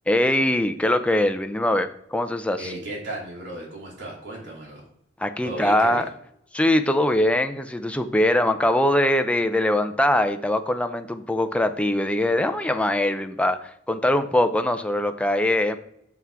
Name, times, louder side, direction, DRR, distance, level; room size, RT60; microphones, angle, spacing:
voice 1, 0.1-2.7 5.2-6.0 6.5-15.8, left 1 dB, 5° left, 8 dB, 0.5 m, -22 dB
voice 2, 2.6-4.9 5.4-6.1, right 1 dB, 65° right, -3 dB, 2.9 m, -35 dB
7.2 x 5.8 x 4.7 m, 0.73 s
head